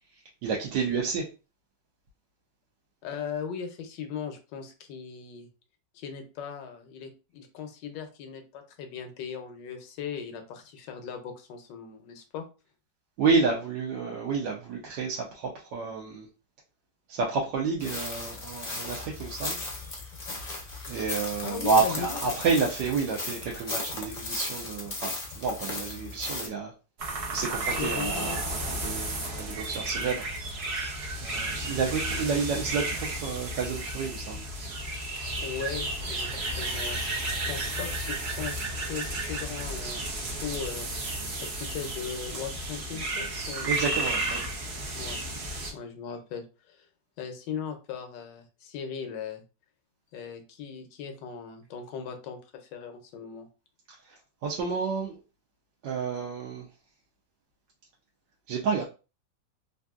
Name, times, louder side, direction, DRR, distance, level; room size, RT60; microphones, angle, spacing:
voice 1, 0.4-1.3 13.2-16.3 17.1-19.6 20.9-26.7 27.3-30.3 31.2-34.4 43.6-44.5 54.1-54.2 54.4-55.2 55.8-56.7 58.5-58.8, right 5 dB, 80° right, 1.3 m, -30 dB
voice 2, 3.0-5.5 5.9-12.4 21.4-22.2 27.8-28.8 35.4-43.8 45.0-45.2 45.7-46.9 47.2-49.4 50.1-53.5, left 7 dB, 80° left, 1.2 m, -38 dB
sound 1, 17.8-26.5, left 2 dB, 40° left, 0.5 m, -36 dB
sound 2, 27.0-45.7, right 2 dB, 55° right, 0.7 m, -33 dB
3.4 x 2.6 x 2.3 m
omnidirectional pair, 2.0 m